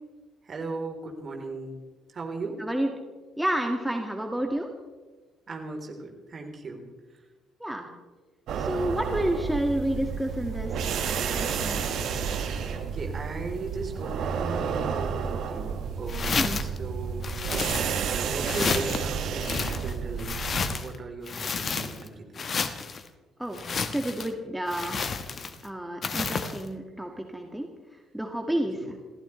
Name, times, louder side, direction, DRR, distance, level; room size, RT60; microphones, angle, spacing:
voice 1, 0.4-1.7 2.1-2.7 5.5-6.9 12.9-20.4 20.7-22.5 28.8-28.9, right 3 dB, 40° right, 2 dB, 3.5 m, -37 dB
voice 2, 3.4-4.7 7.6-7.9 8.6-10.9 11.3-11.8 16.4-16.6 23.4-23.6 23.9-25.0 25.6-27.7 28.1-28.8, right 1 dB, 5° right, 3 dB, 1.9 m, -30 dB
sound 1, 8.5-20.7, right 6 dB, 60° right, 1.6 m, -31 dB
sound 2, 16.1-16.8 17.2-18.1 18.4-19.0 19.4-21.0 21.3-22.1 22.4-23.0 23.5-24.3 24.7-25.6 26.0-26.6, left 5 dB, 40° left, 1.2 m, -31 dB
29.5 x 15.0 x 3.2 m, 1.3 s
figure-of-eight pair, 45°, 0 cm